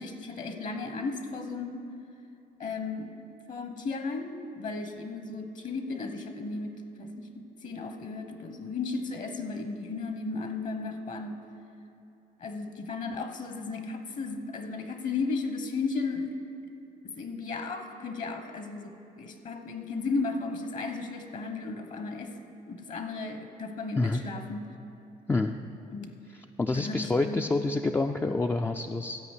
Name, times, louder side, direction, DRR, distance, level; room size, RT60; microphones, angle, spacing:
voice 1, 0.0-1.9 2.6-3.1 3.5-6.7 7.0-11.4 12.4-16.3 17.2-22.4 22.7-24.6 25.9-26.1 26.7-27.6, left 4 dB, 50° left, 6 dB, 1.1 m, -35 dB
voice 2, 25.3-25.6 26.3-29.2, left 2 dB, 10° left, 4 dB, 0.3 m, -28 dB
13.5 x 5.1 x 8.3 m, 2.8 s
cardioid pair, 110°, 17 cm